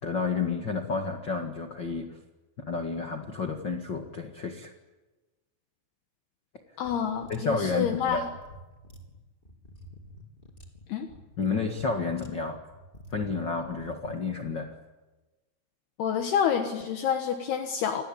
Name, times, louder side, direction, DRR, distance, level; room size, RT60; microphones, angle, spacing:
voice 1, 0.0-2.2 2.6-4.7 7.3-8.3 11.4-12.6 13.1-14.7, left 4 dB, 45° left, 4 dB, 1.5 m, -30 dB
voice 2, 6.8-8.2 10.9-11.1 16.0-18.0, left 8 dB, 70° left, 5 dB, 3.3 m, -28 dB
sound 1, 6.8-14.2, equal, 15° left, 3.1 m, -48 dB
28.5 x 21.0 x 8.9 m, 1.2 s
omnidirectional pair, 5.1 m